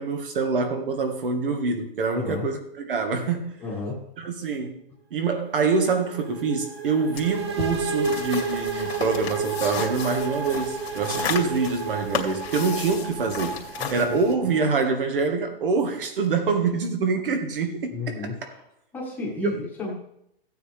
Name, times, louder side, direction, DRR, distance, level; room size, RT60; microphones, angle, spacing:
voice 1, 0.0-3.6 4.2-4.8 5.1-18.5 19.4-19.5, right 4 dB, 60° right, 1.8 m, -25 dB
voice 2, 2.1-2.5 3.6-4.1 13.8-14.2 17.9-18.6 18.9-19.9, left 3 dB, 5° left, 1.5 m, -32 dB
sound 1, 5.2-13.9, right 6 dB, 80° right, 4.6 m, -35 dB
sound 2, 7.1-14.3, left 6 dB, 90° left, 2.3 m, -34 dB
sound 3, 7.2-14.9, right 4 dB, 30° right, 0.4 m, -33 dB
15.5 x 9.2 x 3.4 m
hypercardioid pair, 180°, 30 cm